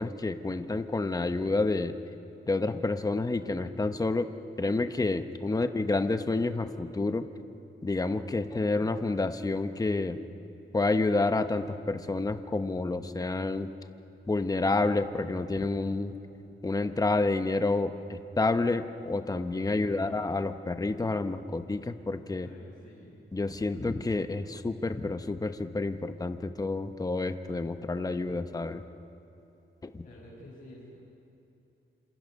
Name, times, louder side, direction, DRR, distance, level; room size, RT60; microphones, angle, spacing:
voice 1, 0.0-1.9 2.5-4.3 4.6-7.2 7.8-10.2 10.7-13.7 14.3-16.1 16.6-22.5 23.3-28.8 29.9-30.0, left 3 dB, 15° left, 9 dB, 0.8 m, -29 dB
voice 2, 19.7-20.3 22.4-23.3 30.0-31.0, left 1 dB, 40° left, -6 dB, 6.4 m, -51 dB
28.0 x 27.0 x 5.4 m, 2.9 s
wide cardioid pair, 135°, 21 cm